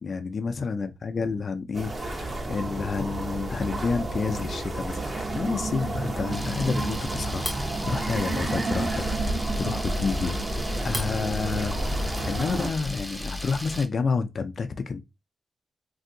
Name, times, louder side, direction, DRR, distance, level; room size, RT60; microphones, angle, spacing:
voice 1, 0.0-15.0, left 4 dB, 60° left, 0.4 m, -30 dB
sound 1, 1.7-12.7, right 2 dB, 45° right, 1.0 m, -30 dB
Camera, 6.3-13.9, left 1 dB, 5° right, 0.6 m, -35 dB
3.4 x 2.7 x 2.6 m
cardioid pair, 60°, 0 cm